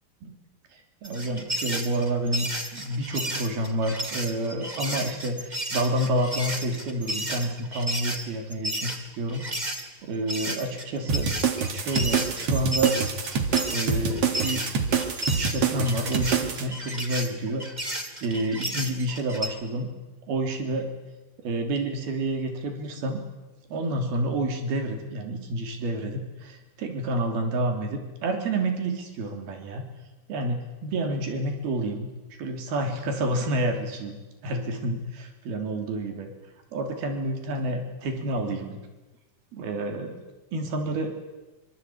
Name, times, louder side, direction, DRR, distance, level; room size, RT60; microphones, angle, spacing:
voice 1, 0.7-9.5 10.0-11.3 11.7-13.0 13.7-14.6 15.3-17.7 18.2-19.9 20.3-20.9 21.4-23.2 23.7-29.9 30.3-32.1 32.4-36.3 36.7-38.8 39.5-40.2 40.5-41.2, right 1 dB, 80° right, 5 dB, 5.1 m, -29 dB
sound 1, 1.0-9.8 10.3-19.5, right 1 dB, 15° right, 1.9 m, -33 dB
sound 2, 11.1-16.6, right 6 dB, 45° right, 2.7 m, -26 dB
25.5 x 24.5 x 8.6 m, 1.1 s
omnidirectional pair, 4.3 m